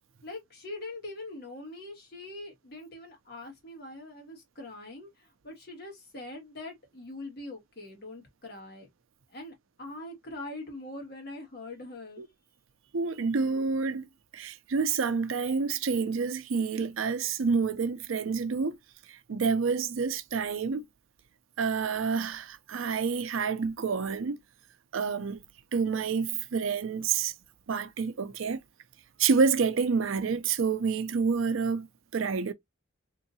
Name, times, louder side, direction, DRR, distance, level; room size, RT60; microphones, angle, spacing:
voice 1, 0.2-8.9 9.3-12.2, left 2 dB, 50° left, 1.8 m, -43 dB
voice 2, 12.9-14.1 14.3-18.8 19.1-20.8 21.6-24.4 24.9-25.4 25.7-27.3 27.7-28.6 29.2-31.9 32.1-32.5, right 5 dB, 80° right, 0.5 m, -28 dB
3.7 x 2.7 x 2.7 m
head